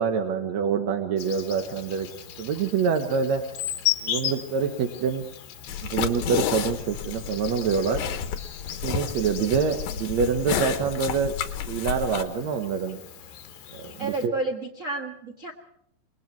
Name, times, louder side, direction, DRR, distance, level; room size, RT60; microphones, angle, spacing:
voice 1, 0.0-2.1 2.4-3.4 4.0-5.2 5.8-8.0 8.8-11.3 11.7-13.0 13.7-14.3, right 6 dB, 60° right, 5 dB, 2.2 m, -26 dB
Insect, 1.2-14.3, left 12 dB, 85° left, 3.1 m, -36 dB
sound 1, 5.7-12.2, left 8 dB, 65° left, 2.3 m, -31 dB
voice 2, 14.0-15.5, right 2 dB, 45° right, 1 dB, 1.0 m, -30 dB
27.5 x 20.5 x 4.7 m, 0.68 s
omnidirectional pair, 4.0 m